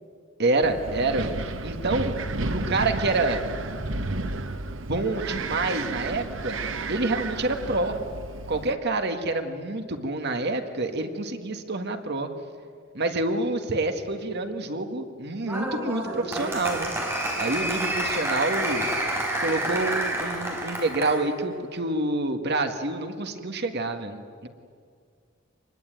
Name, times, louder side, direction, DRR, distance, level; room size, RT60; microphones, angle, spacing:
voice 1, 0.4-1.3 1.6-2.1 2.5-3.4 4.9-6.6 6.9-8.0 8.5-12.3 12.9-16.9 17.4-18.9 19.4-24.5, right 2 dB, 55° right, 6 dB, 1.8 m, -27 dB
Wind, 0.6-8.7, right 2 dB, 75° right, 1.2 m, -32 dB
Applause, 15.5-21.3, right 1 dB, 15° right, 4.7 m, -29 dB
26.0 x 21.0 x 9.2 m, 2.2 s
head